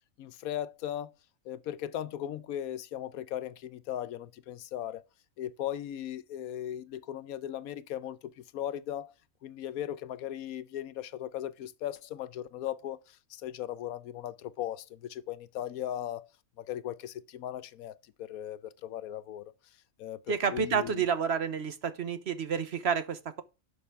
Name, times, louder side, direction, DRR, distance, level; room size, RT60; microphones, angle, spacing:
voice 1, 0.2-1.1 1.5-5.0 5.4-9.1 9.4-16.3 16.6-19.4 20.0-21.0, left 11 dB, 80° left, 1.1 m, -38 dB
voice 2, 20.3-23.4, right 6 dB, 55° right, 1.0 m, -30 dB
11.0 x 6.7 x 3.5 m
omnidirectional pair, 1.5 m